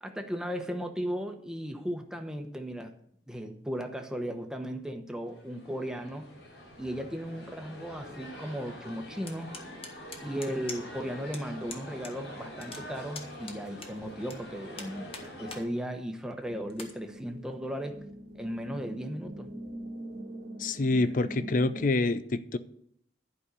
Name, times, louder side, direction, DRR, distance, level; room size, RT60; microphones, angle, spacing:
voice 1, 0.0-2.9 3.3-6.3 6.8-9.5 10.2-15.1 15.4-18.0 18.3-19.5, equal, 5° right, 5 dB, 1.0 m, -36 dB
sound 1, 5.3-15.6, equal, 80° left, 5.4 m, -45 dB
sound 2, 9.3-11.0 11.3-11.4 11.7-12.1 12.4-14.4 14.8-15.6 16.1-16.2 16.7-16.9, left 4 dB, 35° left, 1.4 m, -43 dB
sound 3, 16.5-21.9, right 1 dB, 75° right, 1.6 m, -43 dB
voice 2, 20.6-22.6, left 2 dB, 50° left, 14 dB, 0.5 m, -27 dB
11.5 x 5.4 x 8.2 m, 0.67 s
head